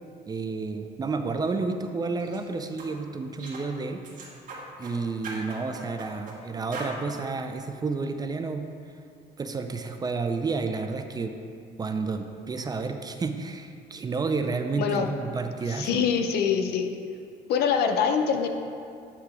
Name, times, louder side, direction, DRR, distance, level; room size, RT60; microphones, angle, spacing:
voice 1, 0.3-4.0 4.8-8.7 9.4-11.4 11.8-16.1, right 4 dB, 25° right, 7 dB, 0.4 m, -30 dB
sound 1, 2.2-2.4 2.8-2.9 3.4-3.7 4.0-5.0 5.2-6.4 6.7-7.0, right 3 dB, 50° right, 1.4 m, -39 dB
voice 2, 14.8-15.1 15.6-16.9 17.5-18.5, left 7 dB, 70° left, 5 dB, 0.6 m, -24 dB
8.3 x 2.9 x 5.9 m, 2.4 s
cardioid pair, 110°, 17 cm